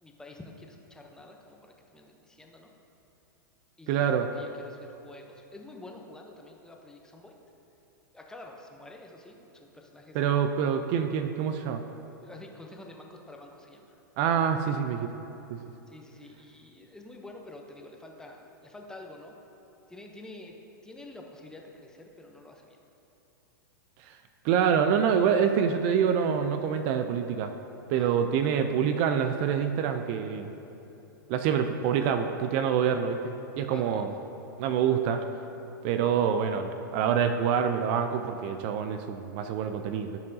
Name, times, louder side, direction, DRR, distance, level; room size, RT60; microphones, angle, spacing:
voice 1, 0.0-2.7 3.8-4.1 4.4-7.3 8.1-10.2 12.2-13.8 15.9-19.4 19.9-20.5 20.8-22.8 27.9-28.1 33.7-34.1, left 2 dB, 5° left, 1 dB, 0.7 m, -48 dB
voice 2, 3.9-4.3 10.1-11.8 14.2-15.1 15.5-15.6 24.1-24.2 24.4-27.5 27.9-30.5 31.3-34.1 34.6-35.2 35.8-40.2, right 7 dB, 45° right, 7 dB, 0.4 m, -26 dB
13.0 x 5.3 x 2.7 m, 3.0 s
hypercardioid pair, 120°, 11 cm